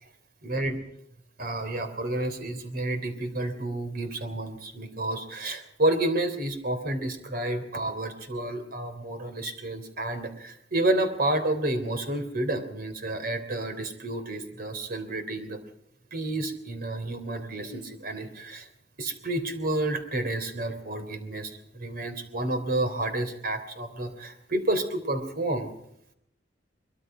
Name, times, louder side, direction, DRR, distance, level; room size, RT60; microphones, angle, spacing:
voice 1, 0.4-0.8 1.4-15.6 16.1-18.7 19.0-25.7, right 1 dB, 55° right, 8 dB, 3.3 m, -30 dB
23.5 x 22.5 x 5.0 m, 0.73 s
head